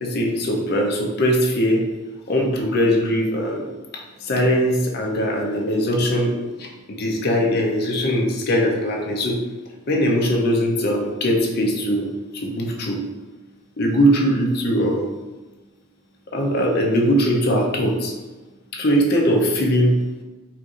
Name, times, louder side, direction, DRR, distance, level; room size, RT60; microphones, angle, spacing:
voice 1, 0.0-1.9 2.3-9.4 9.9-12.1 12.3-13.0 13.8-15.1 16.3-18.2 18.7-20.2, equal, 55° left, 0 dB, 0.6 m, -21 dB
4.4 x 2.5 x 2.4 m, 1.2 s
head